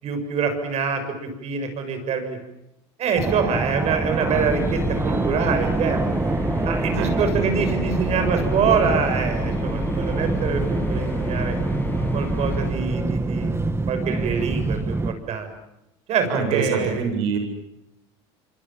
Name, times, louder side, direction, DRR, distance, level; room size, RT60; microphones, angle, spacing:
voice 1, 0.0-2.4 3.0-6.0 6.6-11.6 12.1-13.5 13.9-15.5 16.1-17.0, right 6 dB, 50° right, 7 dB, 7.2 m, -25 dB
Fixed-wing aircraft airplane, 3.2-15.1, right 3 dB, 20° right, 1.9 m, -26 dB
sound 1, 4.3-12.7, left 2 dB, 15° left, 7.0 m, -30 dB
voice 2, 6.9-7.5 16.3-17.4, right 6 dB, 80° right, 6 dB, 7.4 m, -25 dB
26.5 x 26.0 x 7.4 m, 0.87 s
supercardioid pair, 90°, 14 cm